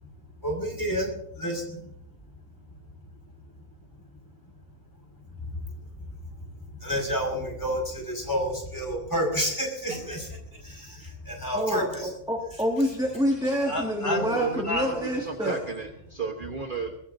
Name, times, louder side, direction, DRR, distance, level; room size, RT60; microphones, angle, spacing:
voice 1, 0.4-1.8 5.5-5.6 6.8-12.1 13.7-14.2 14.6-14.9, equal, 15° left, 0 dB, 5.7 m, -30 dB
sound 1, 9.9-10.3 10.7-12.3 12.9-13.0 13.4-15.6, left 1 dB, 75° right, 6.5 m, -43 dB
voice 2, 11.5-15.6, equal, 5° right, 0 dB, 2.0 m, -27 dB
voice 3, 14.3-17.0, right 5 dB, 40° right, 2 dB, 1.4 m, -33 dB
21.0 x 18.5 x 2.7 m, 0.74 s
omnidirectional pair, 1.3 m